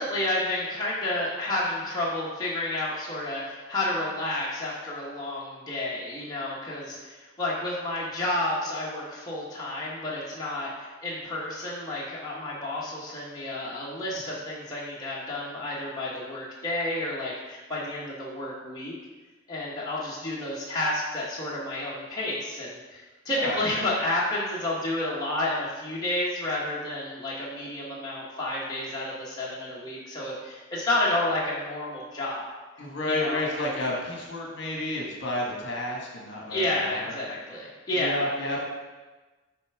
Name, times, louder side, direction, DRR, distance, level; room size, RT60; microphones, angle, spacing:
voice 1, 0.0-10.7 11.0-18.9 19.5-22.8 23.2-32.5 33.1-33.4 36.5-38.2, left 1 dB, 20° left, -7 dB, 1.0 m, -30 dB
voice 2, 32.8-37.1 37.9-38.7, left 1 dB, 55° left, -2 dB, 1.3 m, -31 dB
6.7 x 3.4 x 4.7 m, 1.2 s
head